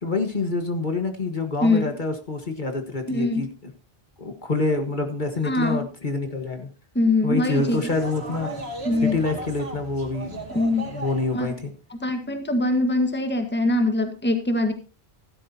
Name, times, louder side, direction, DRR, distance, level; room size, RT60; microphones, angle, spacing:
voice 1, 0.0-3.5 4.2-6.7 7.2-8.6 9.0-10.4 10.8-11.7, left 3 dB, 50° left, 5 dB, 1.7 m, -27 dB
voice 2, 1.6-1.9 3.1-3.4 5.4-5.8 6.9-7.9 8.8-9.2 10.5-10.9 11.3-11.5 11.9-14.7, left 2 dB, 10° left, 7 dB, 1.5 m, -23 dB
sound 1, 7.5-11.6, right 2 dB, 75° right, 2.7 m, -35 dB
14.5 x 12.0 x 2.8 m, 0.33 s
omnidirectional pair, 1.1 m